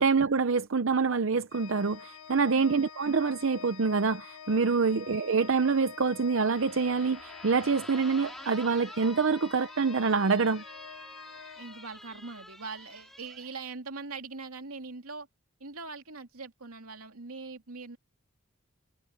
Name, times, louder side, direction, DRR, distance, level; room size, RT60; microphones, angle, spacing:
voice 1, 0.0-10.6, right 5 dB, 65° right, 0.7 m, -26 dB
Organ, 1.5-12.4, left 7 dB, 85° left, 1.1 m, -47 dB
sound 1, 6.5-13.5, equal, ahead, 4.1 m, -48 dB
voice 2, 11.6-15.3 15.6-18.0, right 4 dB, 90° right, 2.6 m, -42 dB
head